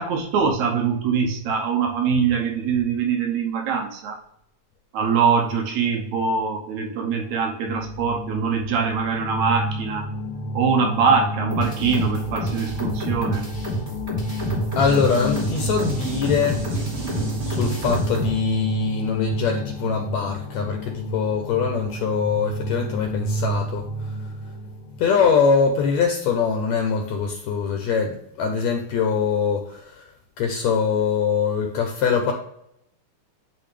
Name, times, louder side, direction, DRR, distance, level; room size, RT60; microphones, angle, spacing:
voice 1, 0.0-4.2 4.9-10.1 10.5-13.4, right 5 dB, 75° right, 2 dB, 2.1 m, -23 dB
sound 1, 7.6-25.0, equal, 45° left, 1.4 m, -31 dB
sound 2, 11.5-18.3, right 1 dB, 20° right, 2.2 m, -29 dB
voice 2, 14.8-16.7 17.4-24.1 25.0-30.0 30.4-32.3, left 6 dB, 75° left, 4 dB, 1.8 m, -23 dB
sound 3, 14.9-18.5, right 2 dB, 50° right, 2.3 m, -32 dB
10.0 x 3.5 x 3.2 m, 0.76 s
omnidirectional pair, 3.6 m